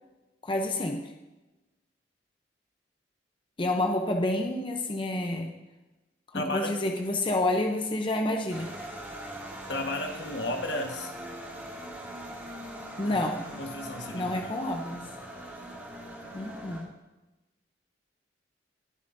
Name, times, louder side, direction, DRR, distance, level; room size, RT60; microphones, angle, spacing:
voice 1, 0.4-1.1 3.6-5.6 6.3-8.7 13.0-13.5 14.1-15.1 16.3-16.9, left 1 dB, 30° left, 3 dB, 0.7 m, -29 dB
voice 2, 6.3-6.7 9.7-11.1 13.1-13.2 13.6-14.5, left 1 dB, 75° left, 3 dB, 1.4 m, -33 dB
sound 1, 8.5-16.8, right 1 dB, 15° right, 2.5 m, -41 dB
20.5 x 7.1 x 2.7 m, 1.1 s
head